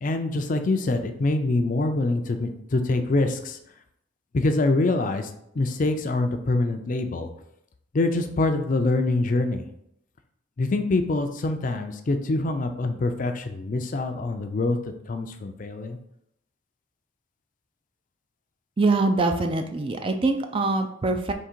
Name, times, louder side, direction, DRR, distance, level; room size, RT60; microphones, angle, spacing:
voice 1, 0.0-3.6 4.3-7.3 7.9-9.6 10.6-14.8 15.1-16.0, left 2 dB, 40° left, 7 dB, 0.4 m, -25 dB
voice 2, 18.8-21.3, right 3 dB, 25° right, 6 dB, 0.3 m, -23 dB
3.7 x 3.1 x 4.4 m, 0.74 s
head